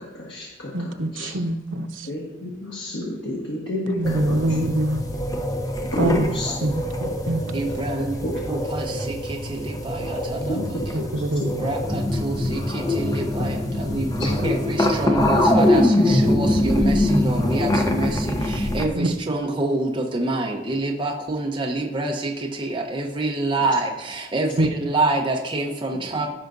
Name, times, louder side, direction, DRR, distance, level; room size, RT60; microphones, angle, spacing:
voice 1, 0.0-1.3 2.0-4.4 5.8-6.5 7.2-8.3 8.9-9.0 10.4-10.6 11.1-11.5 13.1-13.2 13.7-13.8 14.2-14.5, left 1 dB, 70° left, -4 dB, 1.5 m, -30 dB
voice 2, 0.7-2.1 3.9-5.0 6.0-6.2 6.6-7.4 11.2-11.5 14.4-14.5 18.9-19.1 24.6-24.7, right 1 dB, 90° right, 6 dB, 0.7 m, -24 dB
sound 1, 4.0-18.9, left 1 dB, 20° left, 0.7 m, -23 dB
voice 3, 7.5-10.8 11.6-26.3, right 2 dB, 25° right, 0 dB, 0.8 m, -27 dB
15.5 x 5.7 x 2.6 m, 1.0 s
head